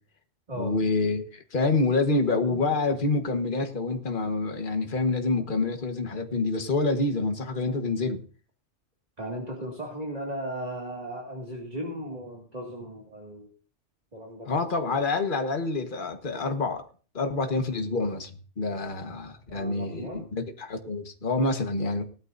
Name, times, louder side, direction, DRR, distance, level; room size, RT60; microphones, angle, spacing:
voice 1, 0.6-8.2 14.5-16.8 17.1-22.0, left 3 dB, 45° left, 5 dB, 1.6 m, -27 dB
voice 2, 9.2-13.5 14.1-14.6 19.5-20.3, equal, 35° right, -2 dB, 2.4 m, -36 dB
19.0 x 13.0 x 2.7 m, 0.39 s
omnidirectional pair, 1.3 m